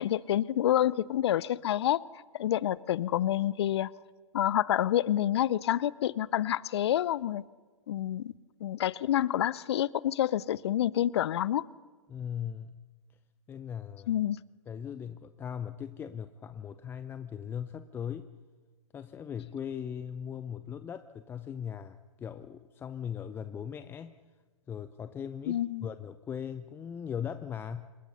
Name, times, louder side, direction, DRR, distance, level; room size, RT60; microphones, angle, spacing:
voice 1, 0.0-2.0 2.3-3.9 4.3-7.4 7.9-8.3 8.6-11.7 14.1-14.4 25.5-25.9, left 12 dB, 50° left, 22 dB, 0.6 m, -28 dB
voice 2, 12.1-12.8 13.5-14.2 14.7-18.3 18.9-24.1 24.7-27.9, left 8 dB, 15° left, 11 dB, 0.6 m, -39 dB
27.0 x 21.5 x 5.7 m, 1.4 s
figure-of-eight pair, 125°, 17 cm